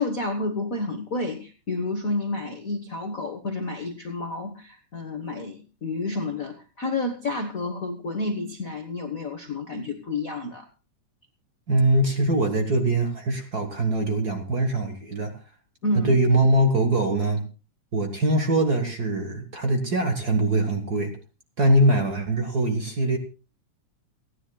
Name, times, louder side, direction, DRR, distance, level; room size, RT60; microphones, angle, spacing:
voice 1, 0.0-10.7 15.8-16.1, left 2 dB, 80° left, 5 dB, 0.7 m, -30 dB
voice 2, 11.7-15.4 15.9-17.4 17.9-21.2 21.6-23.2, right 1 dB, 45° right, 5 dB, 1.3 m, -22 dB
29.0 x 10.0 x 2.3 m, 0.32 s
omnidirectional pair, 3.5 m